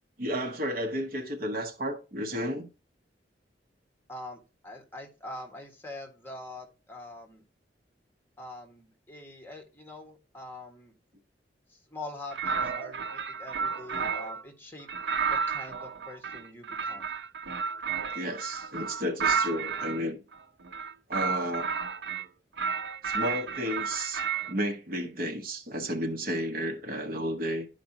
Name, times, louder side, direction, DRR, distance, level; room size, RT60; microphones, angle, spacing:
voice 1, 0.2-2.7 18.1-20.2 21.1-21.7 23.0-27.7, equal, 55° right, 1.1 m, -32 dB
voice 2, 4.1-7.4 8.4-10.9 11.7-14.9 15.3-17.1, left 2 dB, 10° left, 1.6 m, -44 dB
sound 1, 12.3-14.4 14.9-20.0 20.6-22.2 22.6-24.5, right 6 dB, 85° right, 0.7 m, -32 dB
11.5 x 5.1 x 2.8 m
head